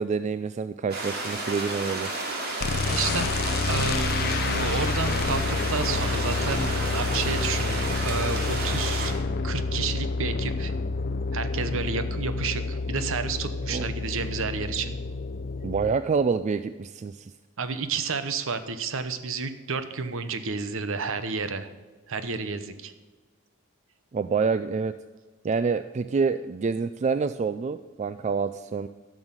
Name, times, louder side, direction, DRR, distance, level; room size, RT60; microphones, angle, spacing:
voice 1, 0.0-2.1 13.7-13.9 15.6-17.3 24.1-24.9 25.4-28.9, right 5 dB, 30° right, 12 dB, 0.3 m, -27 dB
sound 1, 0.9-9.1, right 2 dB, 50° right, 2.6 m, -32 dB
voice 2, 2.5-3.3 3.7-9.2 9.4-10.7 11.3-15.0 17.6-21.7 22.1-22.9, right 4 dB, 65° right, 10 dB, 0.9 m, -31 dB
sound 2, 2.6-15.9, left 3 dB, 45° left, 0.5 m, -29 dB
12.5 x 6.3 x 8.9 m, 1.2 s
head